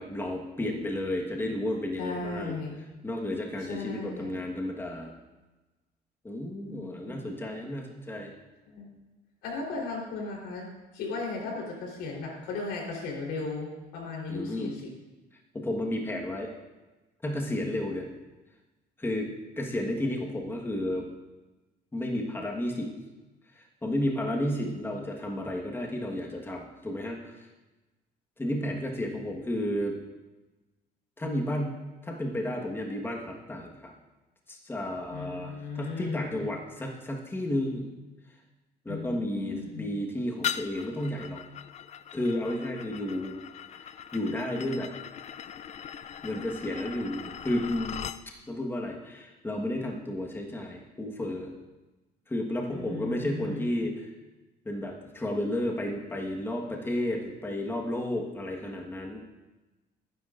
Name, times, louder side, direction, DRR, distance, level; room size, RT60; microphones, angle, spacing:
voice 1, 0.0-2.5 3.0-5.1 6.2-8.3 14.3-14.7 15.5-16.5 17.2-18.1 19.0-19.3 19.6-21.1 21.9-23.0 23.5-27.5 28.4-29.9 31.2-31.8 32.0-33.9 34.5-37.8 38.8-41.4 42.1-43.4 43.8-44.9 46.2-48.0 48.5-51.5 52.3-54.1 54.6-59.2, left 1 dB, 15° left, 0 dB, 1.4 m, -32 dB
voice 2, 2.0-2.8 3.7-4.5 6.6-7.3 8.7-9.0 9.4-10.7 10.9-14.9 35.1-36.5 38.9-39.9 52.7-53.7, left 3 dB, 85° left, -1 dB, 3.7 m, -36 dB
sound 1, 40.4-48.2, left 9 dB, 40° left, 0.5 m, -40 dB
18.5 x 9.9 x 2.5 m, 1.2 s
cardioid pair, 110°, 17 cm